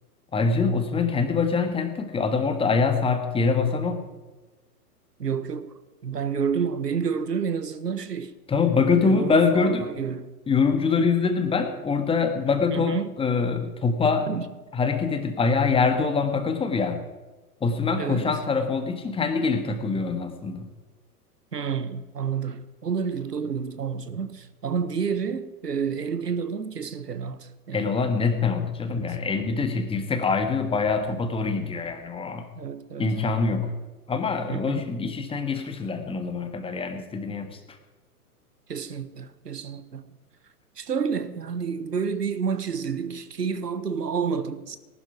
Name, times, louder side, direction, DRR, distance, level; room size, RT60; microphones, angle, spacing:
voice 1, 0.3-4.1 8.5-9.9 10.5-14.3 14.7-17.0 17.6-20.7 27.7-32.5 33.0-33.7 34.1-37.6, left 4 dB, 10° left, 1.7 m, -24 dB
voice 2, 5.2-5.7 6.0-8.3 9.0-10.3 12.7-13.1 14.3-14.4 18.0-18.3 21.5-27.9 28.9-29.2 32.6-33.1 34.5-34.8 38.7-40.0 40.8-44.8, right 6 dB, 80° right, 1.4 m, -29 dB
19.0 x 12.0 x 5.1 m
figure-of-eight pair, 110°, 47 cm